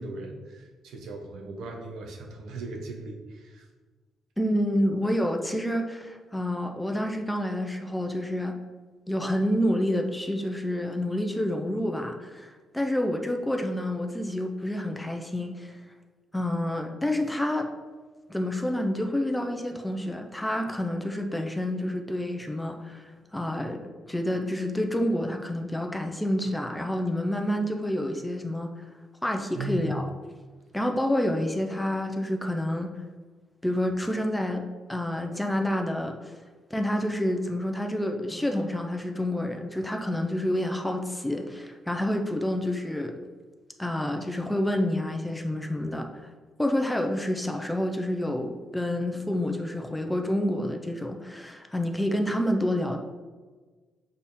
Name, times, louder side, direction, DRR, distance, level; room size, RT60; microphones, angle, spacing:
voice 1, 0.0-3.7 29.5-30.0, right 1 dB, 80° right, 2 dB, 1.0 m, -37 dB
voice 2, 4.4-8.5 9.1-15.8 16.3-17.7 18.3-28.7 29.2-30.0 30.7-32.9 33.6-34.6 34.9-36.3 36.7-43.2 43.8-46.1 46.6-53.0, left 1 dB, 5° left, 3 dB, 0.7 m, -28 dB
6.6 x 3.5 x 4.3 m, 1.4 s
cardioid pair, 90°, 0 cm